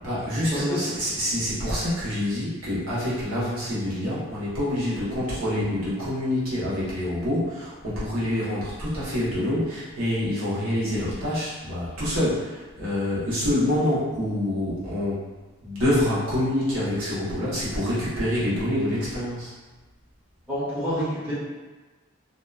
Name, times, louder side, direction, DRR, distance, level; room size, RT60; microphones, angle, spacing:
voice 1, 0.0-15.2 15.6-19.5, left 1 dB, 75° right, -10 dB, 1.0 m, -26 dB
voice 2, 0.5-0.8 20.5-21.3, equal, 10° right, -12 dB, 0.7 m, -28 dB
2.7 x 2.2 x 2.3 m, 1.2 s
head